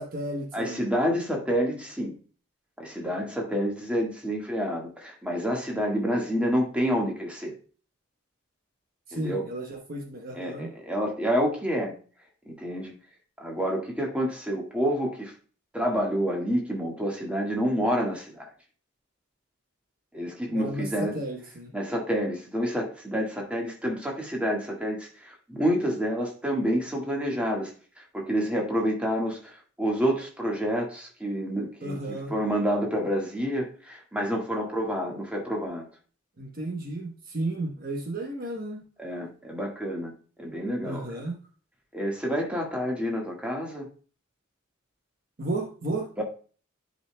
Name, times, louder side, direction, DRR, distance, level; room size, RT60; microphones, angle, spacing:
voice 1, 0.0-0.8 9.1-10.7 20.5-21.7 31.8-32.3 36.4-38.8 40.8-41.4 45.4-46.2, right 2 dB, 45° right, 2 dB, 1.0 m, -33 dB
voice 2, 0.5-2.1 2.8-7.5 9.1-9.4 10.3-11.9 12.4-12.9 13.4-15.3 15.7-18.5 20.1-21.2 21.7-27.7 28.0-35.9 39.0-40.1 40.4-41.3 41.9-43.9 46.2-46.3, equal, 5° right, -1 dB, 1.6 m, -28 dB
11.0 x 5.2 x 2.2 m, 0.39 s
head